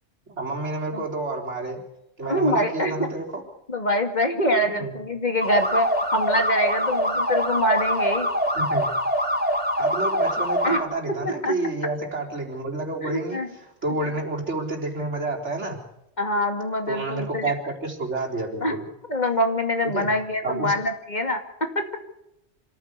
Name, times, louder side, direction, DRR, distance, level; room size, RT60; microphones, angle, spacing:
voice 1, 0.3-1.8 2.2-3.4 4.6-4.9 8.5-8.9 9.8-13.4 13.8-15.8 16.9-18.9 19.9-20.1 20.4-20.7, right 2 dB, 85° right, 0 dB, 4.5 m, -29 dB
voice 2, 2.2-2.9 3.7-8.3 10.6-10.8 11.4-11.5 13.0-13.5 13.9-14.0 16.2-17.5 18.6-18.7 19.1-21.7, left 1 dB, 40° left, 5 dB, 2.5 m, -25 dB
sound 1, 5.4-10.8, equal, 10° right, 4.6 m, -24 dB
26.0 x 15.0 x 8.3 m, 0.83 s
omnidirectional pair, 1.2 m